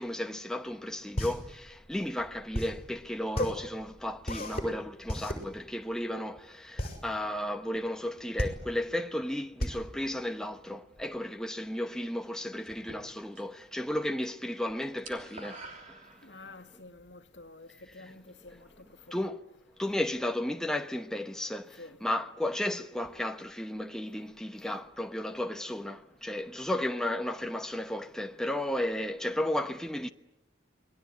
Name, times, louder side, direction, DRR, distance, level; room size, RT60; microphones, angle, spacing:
voice 1, 0.0-16.0 17.9-18.1 19.1-19.4 19.8-30.1, left 1 dB, 5° left, 0.9 m, -34 dB
sound 1, 0.7-11.0, left 1 dB, 35° left, 5.7 m, -35 dB
sound 2, 12.7-13.6 13.9-14.3 14.5-16.6, right 2 dB, 40° right, 3.2 m, -48 dB
voice 2, 16.2-17.7 17.9-18.7 19.1-19.2 21.8-22.0, left 2 dB, 70° left, 1.9 m, -49 dB
28.0 x 21.0 x 9.5 m
head